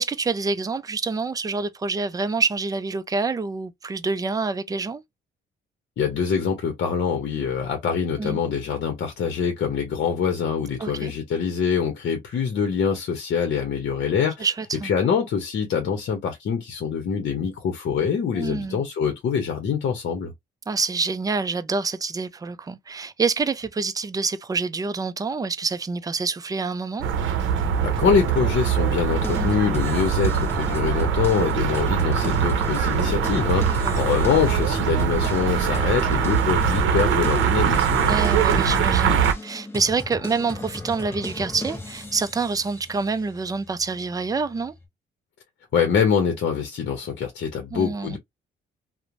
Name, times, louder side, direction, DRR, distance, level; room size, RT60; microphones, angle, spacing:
voice 1, 0.0-5.0 8.2-8.4 10.8-11.1 14.4-14.9 18.4-18.8 20.7-27.1 29.4-29.6 33.8-34.0 38.1-44.7 47.7-48.2, right 4 dB, 20° right, 0.4 m, -27 dB
voice 2, 6.0-14.5 14.8-20.3 27.8-38.1 45.7-48.2, left 7 dB, 60° left, 0.8 m, -24 dB
sound 1, 27.0-39.3, right 7 dB, 80° right, 0.7 m, -22 dB
sound 2, 29.1-44.8, left 2 dB, 10° left, 1.0 m, -37 dB
3.0 x 2.1 x 2.5 m
cardioid pair, 90°, 20 cm